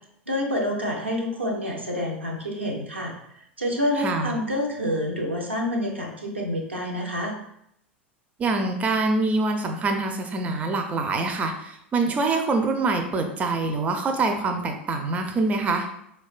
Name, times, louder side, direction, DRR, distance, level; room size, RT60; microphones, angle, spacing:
voice 1, 0.3-7.3, left 1 dB, 85° right, -1 dB, 0.6 m, -28 dB
voice 2, 4.0-4.3 8.4-15.9, right 3 dB, 25° right, 5 dB, 0.4 m, -25 dB
4.1 x 2.2 x 2.4 m, 0.74 s
figure-of-eight pair, 80°, 6 cm